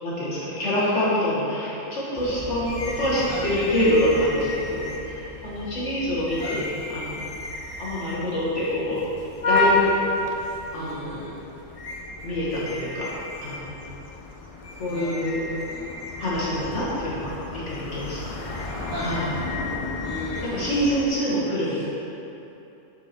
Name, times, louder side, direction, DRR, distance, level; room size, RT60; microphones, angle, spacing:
voice 1, 0.0-2.7 3.0-6.6 6.9-7.2 7.8-9.0 9.4-9.9 10.7-11.2 12.2-13.1 13.4-13.9 14.8-15.4 16.2-18.2 19.0-19.2 20.5-21.8, equal, 65° left, -8 dB, 2.0 m, -26 dB
sound 1, 2.2-21.1, left 2 dB, 45° left, 0.4 m, -31 dB
voice 2, 6.4-6.7 10.7-11.4 14.9-15.9 18.9-19.4 20.0-21.2 21.7-21.8, equal, 15° right, -12 dB, 1.1 m, -37 dB
7.4 x 4.7 x 4.4 m, 3.0 s
omnidirectional pair, 1.3 m